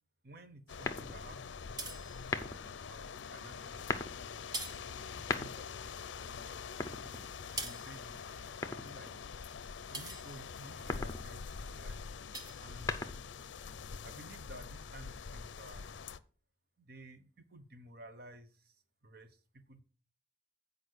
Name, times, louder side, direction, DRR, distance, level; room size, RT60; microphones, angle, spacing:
voice 1, 0.2-2.2 2.9-4.3 4.7-6.8 7.6-9.1 9.9-12.0 12.6-12.9 14.0-15.8 16.8-18.8 19.0-19.8, right 1 dB, 55° right, 10 dB, 1.0 m, -54 dB
sound 1, 0.7-16.2, left 6 dB, 80° left, 0.5 m, -45 dB
sound 2, 0.9-1.4 2.2-2.8 3.7-4.2 5.1-5.8 6.7-7.6 8.6-9.2 10.7-11.3 12.6-13.4, left 3 dB, 15° left, 0.7 m, -39 dB
sound 3, 1.8-2.7 3.5-4.0 4.3-5.8 6.1-11.0 11.5-11.7 12.0-13.4, right 2 dB, 20° right, 0.9 m, -47 dB
8.4 x 5.1 x 6.5 m, 0.40 s
head